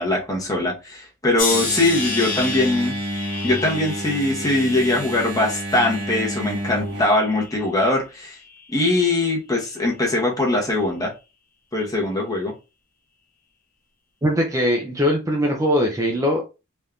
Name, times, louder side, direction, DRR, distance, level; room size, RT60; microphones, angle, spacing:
voice 1, 0.0-2.9 3.4-8.4 8.7-11.1 11.7-12.5, left 2 dB, 15° left, 0.8 m, -21 dB
sound 1, 1.4-6.5 7.0-7.7 8.4-8.7, left 4 dB, 40° left, 1.0 m, -31 dB
Engine, 1.5-7.0, right 1 dB, 65° right, 1.6 m, -30 dB
voice 2, 14.2-16.5, equal, 15° right, 0.4 m, -21 dB
3.4 x 2.6 x 2.3 m
head